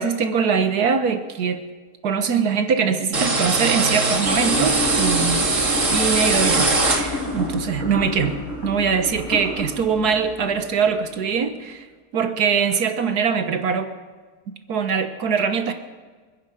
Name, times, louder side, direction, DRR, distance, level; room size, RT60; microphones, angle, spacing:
voice 1, 0.0-1.6 2.0-5.4 5.9-11.9 12.1-13.9 14.7-15.7, right 6 dB, 75° right, 8 dB, 1.7 m, -22 dB
sound 1, 3.1-7.5, right 3 dB, 50° right, 2.3 m, -21 dB
sound 2, 4.2-11.3, left 2 dB, 65° left, 6.5 m, -30 dB
28.0 x 10.5 x 5.0 m, 1.4 s
omnidirectional pair, 1.7 m